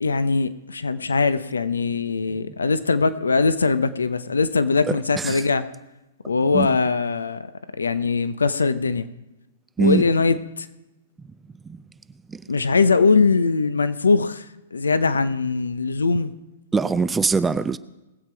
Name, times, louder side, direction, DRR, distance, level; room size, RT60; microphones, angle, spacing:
voice 1, 0.0-5.7 6.3-7.4 7.8-9.1 9.8-10.7 12.5-14.4 14.7-16.3, left 4 dB, 85° left, 0.7 m, -21 dB
voice 2, 4.9-5.4 6.5-6.7 9.8-10.0 11.7-11.8 12.3-12.4 16.7-17.8, right 4 dB, 10° right, 0.4 m, -22 dB
20.0 x 7.6 x 4.5 m
hypercardioid pair, 115°, 0 cm